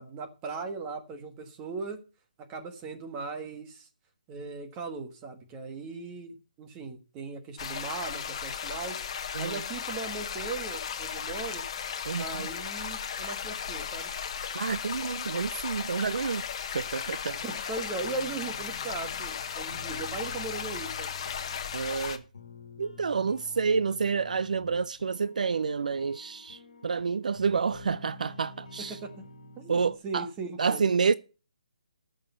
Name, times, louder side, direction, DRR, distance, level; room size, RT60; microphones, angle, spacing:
voice 1, 0.0-2.0 2.5-3.9 4.3-9.0 9.4-11.6 12.2-14.1 17.3-21.1 28.8-29.3 29.6-30.9, right 4 dB, 15° right, 1.4 m, -38 dB
sound 1, 7.6-22.2, left 7 dB, 40° left, 1.2 m, -36 dB
voice 2, 12.1-12.4 14.5-16.4 16.7-17.4 21.7-22.2 22.8-29.0 29.7-30.3 30.6-31.1, right 5 dB, 70° right, 0.5 m, -29 dB
sound 2, 18.0-30.0, left 4 dB, 65° left, 1.8 m, -49 dB
14.0 x 6.5 x 5.5 m
hypercardioid pair, 165°, 4 cm